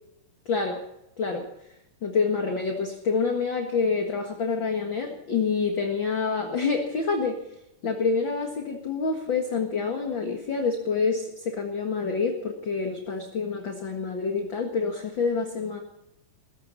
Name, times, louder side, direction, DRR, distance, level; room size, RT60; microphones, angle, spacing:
voice 1, 0.5-0.8 1.2-1.5 2.0-7.4 7.8-15.8, left 4 dB, 45° left, 2 dB, 2.0 m, -27 dB
18.5 x 16.0 x 4.1 m, 0.84 s
omnidirectional pair, 3.9 m